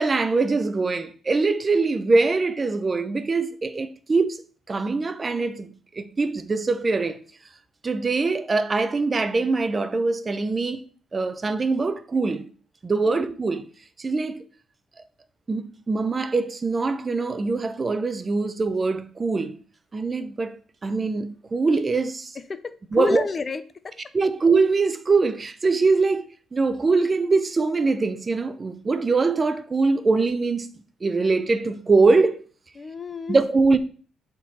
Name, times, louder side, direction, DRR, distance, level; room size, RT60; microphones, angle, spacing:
voice 1, 0.0-7.2 7.8-10.8 11.1-12.5 12.8-13.6 14.0-14.4 15.5-19.6 19.9-22.4 22.9-23.2 24.1-30.7 31.0-32.5 33.3-33.8, right 3 dB, 30° right, 0.7 m, -23 dB
voice 2, 22.5-23.9 32.8-33.4, left 4 dB, 35° left, 0.7 m, -29 dB
7.1 x 3.8 x 4.2 m
cardioid pair, 90°, 0 cm